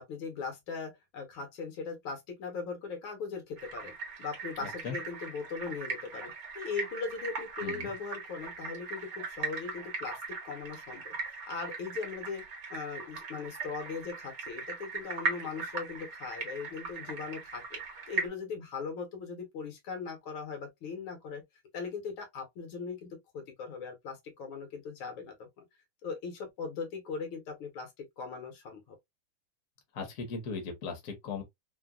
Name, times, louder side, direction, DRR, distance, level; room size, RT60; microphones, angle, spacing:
voice 1, 0.0-3.9 4.2-10.2 10.4-12.4 12.7-17.8 18.1-21.4 21.7-25.7 26.0-27.9 28.2-29.0, left 5 dB, 70° left, 1.7 m, -39 dB
sound 1, 3.6-18.3, right 4 dB, 50° right, 1.2 m, -39 dB
voice 2, 4.6-5.0 7.6-7.9 29.9-31.4, left 5 dB, 50° left, 1.1 m, -38 dB
3.8 x 2.2 x 2.3 m
omnidirectional pair, 2.3 m